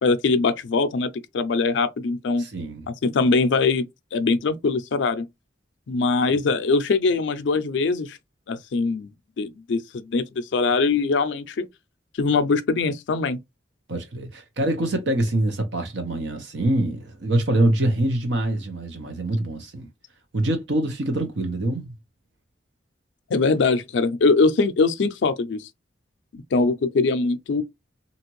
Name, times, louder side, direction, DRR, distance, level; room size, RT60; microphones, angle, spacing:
voice 1, 0.0-2.4 2.9-3.8 4.1-5.3 5.9-8.2 8.5-9.1 9.4-11.6 12.2-13.4 23.3-25.7 26.3-27.6, left 4 dB, 75° left, 0.4 m, -22 dB
voice 2, 2.4-2.9 6.3-6.4 13.9-19.9 20.3-21.9, right 1 dB, 75° right, 1.0 m, -24 dB
2.8 x 2.5 x 3.0 m
head